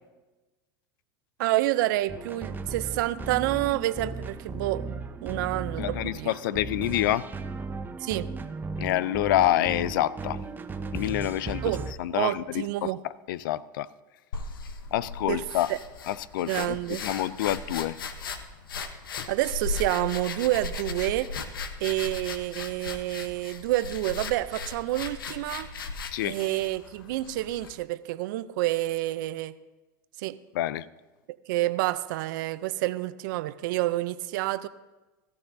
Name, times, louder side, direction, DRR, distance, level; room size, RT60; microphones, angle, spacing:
voice 1, 1.4-6.6 8.0-8.3 11.6-11.9 12.1-13.0 15.3-15.4 15.7-15.8 16.5-17.0 19.3-21.4 21.8-25.7 26.2-29.5 30.2-30.4 31.5-34.7, right 16 dB, 70° right, 14 dB, 0.5 m, -28 dB
sound 1, 2.1-11.9, right 4 dB, 15° right, 0.8 m, -36 dB
voice 2, 5.8-7.3 8.8-10.4 10.9-11.7 12.0-13.9 14.9-15.7 16.1-18.0 19.2-19.3 26.1-26.4 30.5-30.9, left 13 dB, 75° left, 19 dB, 0.5 m, -27 dB
sound 2, 14.3-27.8, left 4 dB, 90° left, 0.9 m, -37 dB
17.5 x 14.0 x 2.7 m, 1.1 s
hypercardioid pair, 95°, 11 cm